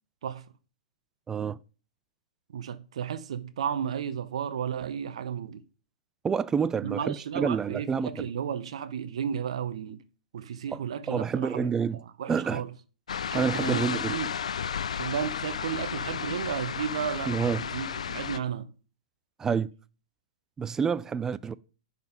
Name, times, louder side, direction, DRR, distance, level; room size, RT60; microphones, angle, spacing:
voice 1, 1.3-1.6 6.2-8.3 10.7-12.0 12.3-12.6 13.3-14.2 17.3-17.7 19.4-19.7 20.6-21.6, right 6 dB, 15° right, 0.3 m, -28 dB
voice 2, 2.5-5.6 6.8-10.0 10.3-11.7 12.2-12.7 13.3-14.3 14.9-17.3 17.7-18.7, right 8 dB, 60° right, 0.6 m, -33 dB
sound 1, 13.1-18.4, left 7 dB, 70° left, 0.4 m, -33 dB
10.5 x 4.1 x 5.2 m
figure-of-eight pair, 105°, 4 cm